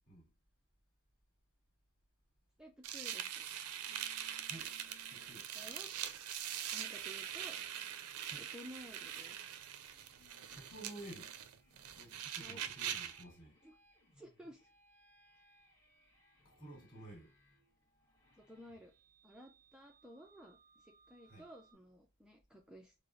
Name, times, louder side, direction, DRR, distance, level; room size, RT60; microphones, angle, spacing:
voice 1, 2.6-3.5 5.5-5.9 6.7-7.6 8.4-9.4 12.3-12.6 13.6-13.7 14.1-14.7 18.4-18.9 19.2-22.9, equal, 5° right, 0.3 m, -55 dB
sound 1, 2.8-13.2, right 10 dB, 85° right, 0.4 m, -43 dB
sound 2, 3.9-21.7, equal, 15° left, 0.9 m, -68 dB
voice 2, 5.1-5.4 8.3-8.5 10.5-11.3 11.9-13.5 16.4-17.3 21.3-21.4, right 1 dB, 40° left, 1.6 m, -52 dB
4.7 x 2.0 x 2.4 m
head